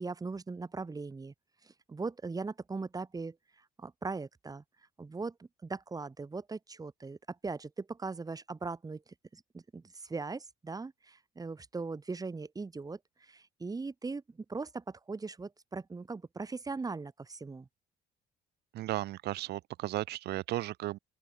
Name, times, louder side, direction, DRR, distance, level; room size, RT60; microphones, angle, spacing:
voice 1, 0.0-1.3 1.6-3.4 3.8-4.6 5.0-9.0 9.3-17.7, right 4 dB, 20° right, 5.0 m, -39 dB
voice 2, 18.7-21.0, right 15 dB, 75° right, 4.4 m, -35 dB
open air
cardioid pair, 110°, 17 cm